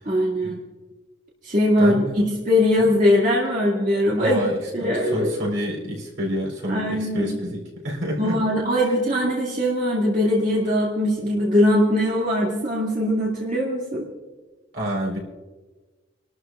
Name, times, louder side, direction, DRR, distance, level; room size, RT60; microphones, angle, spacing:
voice 1, 0.0-0.6 1.4-4.4 4.7-5.3 6.7-7.3 8.2-14.1, left 1 dB, 40° right, -4 dB, 2.2 m, -21 dB
voice 2, 1.8-2.2 2.8-2.9 4.2-8.4 14.7-15.2, equal, 75° right, -2 dB, 4.1 m, -28 dB
29.5 x 12.5 x 2.4 m, 1.3 s
head